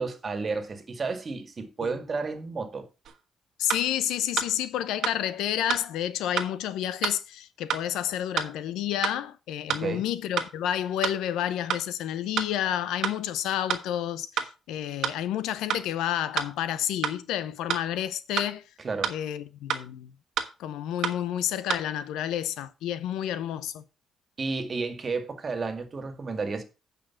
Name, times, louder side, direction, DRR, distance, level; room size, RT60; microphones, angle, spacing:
voice 1, 0.0-2.9 9.7-10.0 18.8-19.1 24.4-26.6, right 4 dB, 35° right, 1.9 m, -32 dB
sound 1, 3.0-3.2 3.7-3.8 4.4-4.5 5.0-5.2 5.7-5.8 6.4-6.5 7.0-7.2 7.7-7.8 8.4-8.5 9.0-9.2 9.7-9.8 10.4-10.5 11.0-11.2 11.7-11.8 12.4-12.5 13.0-13.2 13.7-13.8 14.4-14.5 15.0-15.2 15.7-15.8 16.4-16.5 17.0-17.2 17.7-17.8 18.4-18.5 19.0-19.2 19.7-19.8 20.4-20.5 21.0-21.2 21.7-21.8, right 8 dB, 70° right, 1.2 m, -28 dB
voice 2, 3.6-18.6 19.1-20.1 20.6-23.8, left 11 dB, 90° left, 0.7 m, -30 dB
8.8 x 5.3 x 5.8 m
cardioid pair, 90°, 0 cm